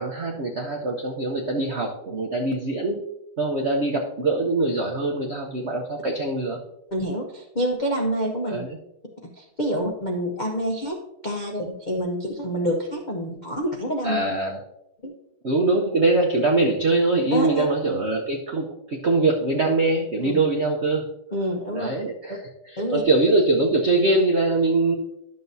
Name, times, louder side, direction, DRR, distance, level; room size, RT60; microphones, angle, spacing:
voice 1, 0.0-3.0 3.4-6.6 8.4-8.8 14.0-14.6 15.4-21.1 21.7-22.4 22.7-24.9, right 2 dB, 90° right, 1 dB, 0.6 m, -23 dB
voice 2, 6.9-8.6 9.4-14.2 15.0-15.1 17.3-17.7 20.2-20.4 21.3-21.9 22.8-23.0, equal, 65° left, 0 dB, 0.4 m, -27 dB
11.5 x 6.8 x 2.7 m, 0.84 s
omnidirectional pair, 2.3 m